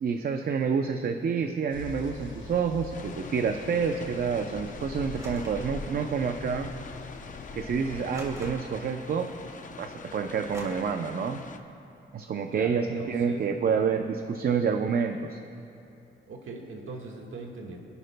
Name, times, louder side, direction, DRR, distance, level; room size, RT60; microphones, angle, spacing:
voice 1, 0.0-6.7 7.5-9.3 9.8-11.5 12.1-15.4, right 6 dB, 50° right, 6 dB, 0.6 m, -28 dB
sound 1, 1.7-8.5, left 4 dB, 70° left, 1.4 m, -42 dB
sound 2, 2.9-11.6, left 5 dB, 40° left, 0.7 m, -45 dB
sound 3, 5.1-5.7 6.7-6.8 8.1-8.9 10.5-10.6, equal, 15° right, 2.7 m, -44 dB
voice 2, 12.4-13.4 16.3-17.8, right 3 dB, 90° right, 0 dB, 1.6 m, -40 dB
26.5 x 12.0 x 2.2 m, 2.7 s
wide cardioid pair, 145°, 20 cm